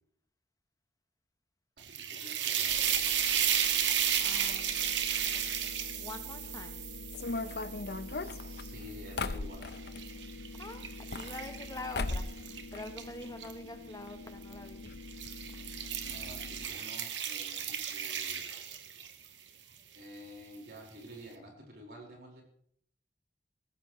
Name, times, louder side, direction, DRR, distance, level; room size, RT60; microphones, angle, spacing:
voice 1, 1.8-3.3 8.0-10.1 12.7-12.8 16.0-18.4 19.9-22.4, equal, 60° right, -1 dB, 4.6 m, -50 dB
sound 1, 1.8-9.0 9.5-13.5 14.4-14.7 15.1-19.3, right 9 dB, 85° right, 1.4 m, -34 dB
sound 2, 2.7-16.7, left 3 dB, 85° left, 1.1 m, -47 dB
voice 2, 4.2-5.0 6.0-6.8 10.6-14.9, left 2 dB, 20° left, 7 dB, 0.9 m, -45 dB
sound 3, 7.1-10.0 10.9-11.7 11.9-12.4 12.7-13.5 13.8-13.9 14.1-14.2 14.9-15.0 15.3-15.4, left 3 dB, 60° left, 0.7 m, -37 dB
18.5 x 15.0 x 3.1 m, 0.64 s
head